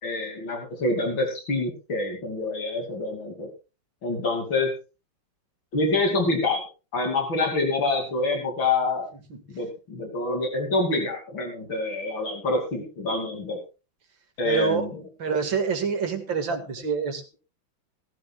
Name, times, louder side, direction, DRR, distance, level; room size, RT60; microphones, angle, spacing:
voice 1, 0.0-3.5 4.0-4.7 5.7-6.6 6.9-9.1 9.5-13.6 14.4-15.0, left 2 dB, 70° left, 3 dB, 3.5 m, -26 dB
voice 2, 14.4-14.9 15.2-17.4, right 6 dB, 70° right, 6 dB, 2.7 m, -26 dB
18.0 x 14.5 x 2.4 m, 0.31 s
omnidirectional pair, 2.2 m